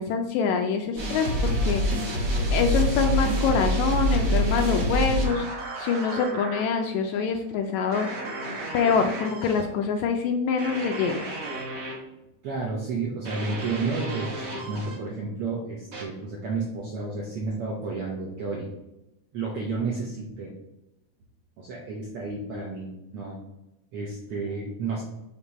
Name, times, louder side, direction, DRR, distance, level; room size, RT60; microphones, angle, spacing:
voice 1, 0.0-1.8 2.5-5.5 5.8-8.1 8.7-11.3, left 6 dB, 80° left, 5 dB, 1.7 m, -25 dB
sound 1, 1.0-6.6 7.9-9.6 10.6-12.0 13.2-15.0 15.9-16.0, right 1 dB, 50° right, 1.0 m, -28 dB
voice 2, 12.4-18.7 19.3-20.5 21.6-23.4 23.9-25.0, right 4 dB, 70° right, -2 dB, 1.3 m, -31 dB
6.6 x 2.9 x 5.3 m, 0.93 s
omnidirectional pair, 3.6 m